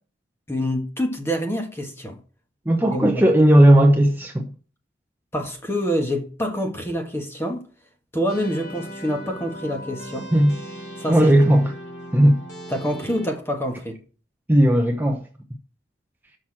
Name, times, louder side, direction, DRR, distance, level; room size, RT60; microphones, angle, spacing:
voice 1, 0.5-2.2 2.9-3.2 5.3-7.7 8.1-10.3 11.0-11.3 12.7-14.0, equal, 15° left, 1.5 m, -26 dB
voice 2, 2.7-4.5 10.3-10.6 11.1-11.7 12.1-12.4 14.5-15.2, right 1 dB, 10° right, 0.8 m, -16 dB
sound 1, 8.3-13.4, equal, 90° left, 3.4 m, -38 dB
6.4 x 5.9 x 7.3 m
head